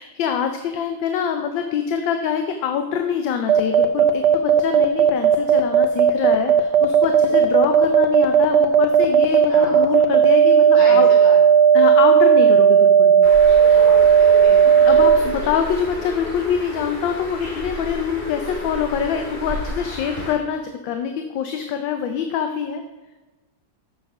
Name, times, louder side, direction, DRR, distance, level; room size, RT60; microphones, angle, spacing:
voice 1, 0.0-11.1 11.7-13.3 13.6-13.9 14.9-22.8, left 7 dB, 75° left, 6 dB, 1.4 m, -25 dB
sound 1, 3.5-15.2, right 8 dB, 70° right, 1.2 m, -13 dB
voice 2, 9.5-9.8 10.7-11.4 13.7-14.6 15.2-15.3, equal, 45° left, -6 dB, 4.0 m, -34 dB
Bird, 13.2-20.3, left 2 dB, 25° left, 2.6 m, -32 dB
7.7 x 6.4 x 6.0 m, 1.2 s
omnidirectional pair, 2.1 m